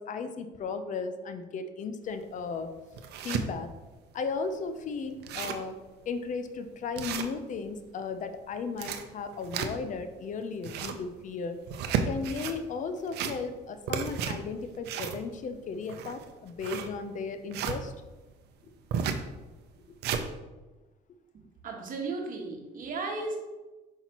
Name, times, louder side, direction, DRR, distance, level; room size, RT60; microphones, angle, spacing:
voice 1, 0.0-2.7 3.2-3.7 4.1-5.8 6.1-11.6 12.0-17.9, left 4 dB, 50° left, 9 dB, 0.6 m, -35 dB
sound 1, 2.1-2.2 2.7-3.4 4.0-4.1 4.4-4.5 4.8-4.9 5.1-5.7 6.2-6.3 7.0-7.8 8.5-10.0 10.5-11.1 11.6-12.6 13.0-13.6 13.9-17.8 18.9-19.3 19.7-20.3, right 7 dB, 75° right, 0.6 m, -33 dB
voice 2, 21.6-23.4, right 3 dB, 55° right, 1 dB, 1.4 m, -35 dB
5.7 x 5.7 x 3.0 m, 1.1 s
cardioid pair, 110°, 17 cm